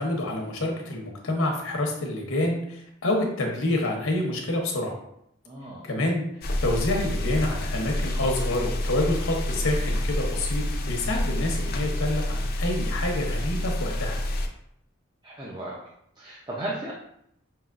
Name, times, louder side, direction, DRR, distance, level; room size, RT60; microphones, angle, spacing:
voice 1, 0.0-5.0 5.8-6.2 6.6-14.2, left 1 dB, 85° left, 1 dB, 0.8 m, -27 dB
voice 2, 5.5-5.9 15.2-15.9 16.2-16.9, right 1 dB, 20° right, -5 dB, 0.5 m, -35 dB
sound 1, 6.4-14.5, left 1 dB, 50° left, 0.5 m, -28 dB
5.5 x 2.9 x 2.4 m, 0.75 s
head